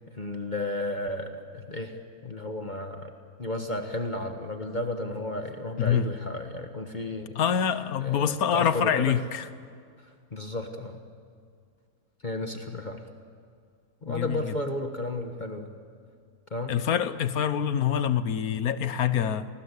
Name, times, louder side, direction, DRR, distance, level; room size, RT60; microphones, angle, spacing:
voice 1, 0.1-3.1 3.4-7.4 8.0-9.2 10.3-11.0 12.2-13.0 14.0-15.7 16.5-16.7, left 1 dB, 35° left, 5 dB, 1.6 m, -33 dB
voice 2, 5.8-6.1 7.3-9.5 14.1-14.6 16.7-19.5, left 8 dB, 85° left, 13 dB, 1.5 m, -25 dB
29.0 x 19.5 x 8.4 m, 2.2 s
omnidirectional pair, 1.5 m